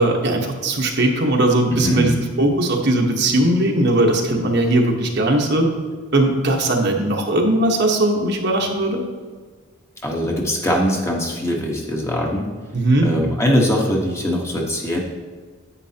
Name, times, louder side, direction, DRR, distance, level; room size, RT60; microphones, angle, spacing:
voice 1, 0.0-5.7 6.1-9.0 12.7-13.1, right 1 dB, 55° right, 1 dB, 1.2 m, -19 dB
voice 2, 1.7-2.2 10.0-12.5 13.0-15.0, equal, 15° left, -1 dB, 1.2 m, -21 dB
10.0 x 8.7 x 2.9 m, 1.5 s
head